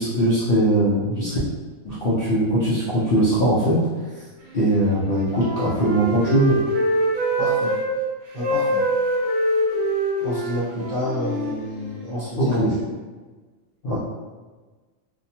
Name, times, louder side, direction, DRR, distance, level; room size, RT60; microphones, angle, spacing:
voice 1, 0.0-1.4 1.8-3.8 4.5-6.6 12.4-12.7 13.8-14.0, right 1 dB, 60° left, -9 dB, 0.6 m, -20 dB
Wind instrument woodwind instrument, 4.9-7.9 8.4-12.2, right 1 dB, 70° right, 1.0 m, -24 dB
voice 2, 7.4-7.7 8.3-8.8 10.2-12.9, equal, 45° right, -9 dB, 0.8 m, -29 dB
2.7 x 2.2 x 2.7 m, 1.3 s
omnidirectional pair, 1.5 m